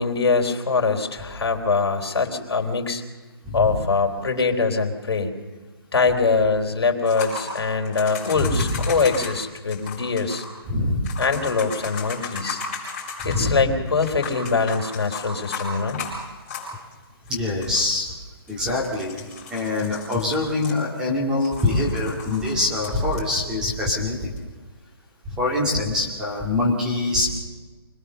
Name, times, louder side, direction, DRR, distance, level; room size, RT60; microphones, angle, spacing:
voice 1, 0.0-3.0 3.5-5.3 5.9-10.4 11.2-12.6 13.2-16.0, left 4 dB, 85° left, 2 dB, 3.7 m, -23 dB
voice 2, 3.4-3.8 8.4-8.8 10.7-11.1 13.3-13.6 17.3-18.1 18.5-24.3 25.3-27.4, left 2 dB, 5° right, -3 dB, 2.1 m, -24 dB
sound 1, 7.0-9.3 9.7-10.5 11.0-13.5 14.0-16.9 17.3-17.4 17.6-17.9 18.5-21.1 21.4-23.2 24.4-24.5, left 4 dB, 20° left, 5.5 m, -35 dB
25.5 x 19.0 x 6.8 m, 1.3 s
hypercardioid pair, 180°, 13 cm